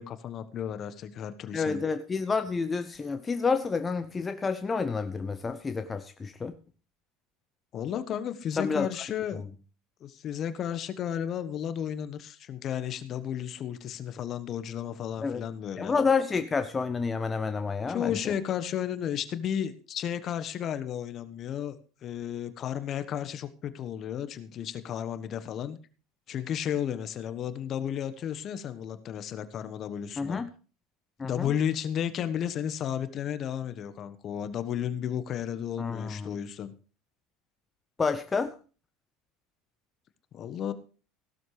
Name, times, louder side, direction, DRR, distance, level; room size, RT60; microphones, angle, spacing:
voice 1, 0.0-1.8 7.7-9.4 10.0-16.0 17.9-21.8 22.0-25.8 26.3-30.4 31.2-36.7 40.3-40.7, left 9 dB, 45° left, 12 dB, 1.2 m, -33 dB
voice 2, 1.5-6.5 8.6-8.9 15.2-15.4 15.8-18.3 30.2-30.5 31.2-31.5 35.8-36.3 38.0-38.5, left 5 dB, 25° left, 9 dB, 0.8 m, -29 dB
16.0 x 12.0 x 3.3 m, 0.37 s
hypercardioid pair, 75°, 0 cm